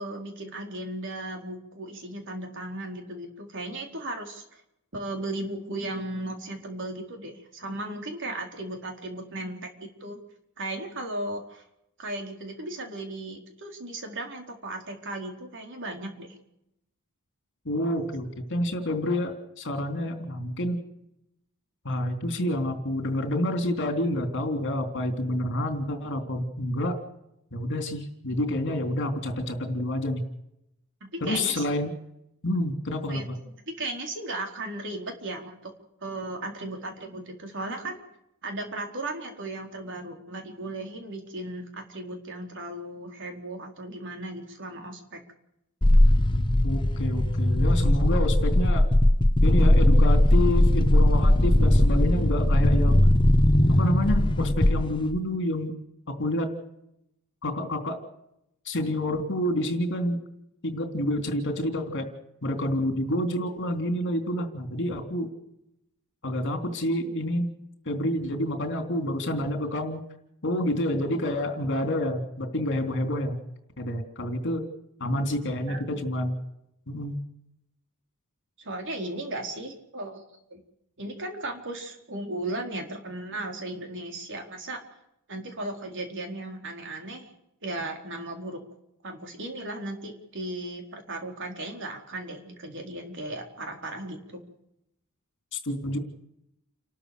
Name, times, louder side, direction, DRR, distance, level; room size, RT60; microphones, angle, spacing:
voice 1, 0.0-4.6 4.9-10.2 10.6-11.6 12.0-16.4 31.0-31.8 33.1-33.3 33.7-35.7 36.0-38.0 38.4-45.2 75.7-75.8 78.6-80.2 80.5-80.6 81.0-84.8 85.3-87.3 87.6-88.6 89.0-94.5, right 2 dB, 60° right, 3 dB, 4.3 m, -36 dB
voice 2, 17.6-20.8 21.8-27.0 27.5-30.2 31.2-31.9 32.4-33.4 46.6-48.9 49.4-53.1 53.8-55.8 56.2-56.6 57.4-58.0 58.6-60.2 60.6-62.1 62.4-65.3 66.2-67.5 67.8-70.0 70.4-73.4 73.8-74.6 75.0-76.4 76.9-77.2 95.5-96.0, left 1 dB, 55° left, 6 dB, 3.4 m, -28 dB
sound 1, 45.8-55.2, left 1 dB, 20° left, 1.0 m, -19 dB
30.0 x 13.0 x 6.9 m, 0.81 s
head